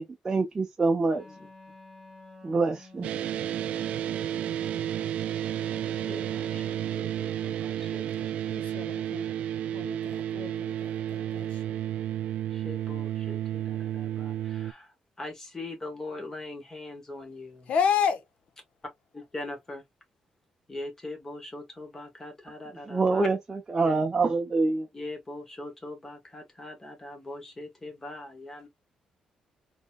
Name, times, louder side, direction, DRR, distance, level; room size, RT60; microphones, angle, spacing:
voice 1, 0.0-1.2 2.4-3.1 22.9-24.9, right 3 dB, 20° right, 0.7 m, -26 dB
Wind instrument woodwind instrument, 1.1-7.2, left 2 dB, ahead, 2.1 m, -51 dB
sound 1, 3.0-14.7, right 11 dB, 75° right, 0.3 m, -32 dB
voice 2, 5.9-8.3 12.5-17.7 19.1-19.8 20.7-23.3 23.8-24.0 24.9-28.7, left 2 dB, 15° left, 1.6 m, -41 dB
voice 3, 8.5-9.3 9.7-11.8 17.7-18.3, left 7 dB, 65° left, 0.9 m, -31 dB
4.0 x 2.9 x 2.5 m
cardioid pair, 150°, 2 cm